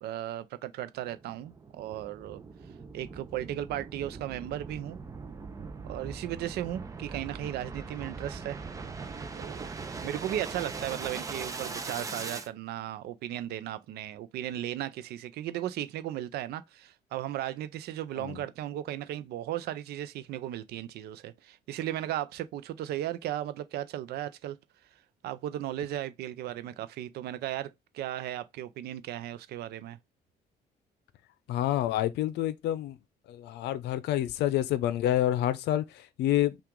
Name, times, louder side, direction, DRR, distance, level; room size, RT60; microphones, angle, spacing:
voice 1, 0.0-2.4 2.9-5.0 5.8-8.6 9.3-9.7 10.0-24.6 25.2-30.0, right 12 dB, 70° right, 0.5 m, -36 dB
sound 1, 1.0-12.5, right 4 dB, 20° right, 0.6 m, -40 dB
voice 2, 31.5-33.0 33.3-36.6, left 13 dB, 85° left, 0.6 m, -28 dB
5.8 x 2.4 x 3.7 m
cardioid pair, 155°, 17 cm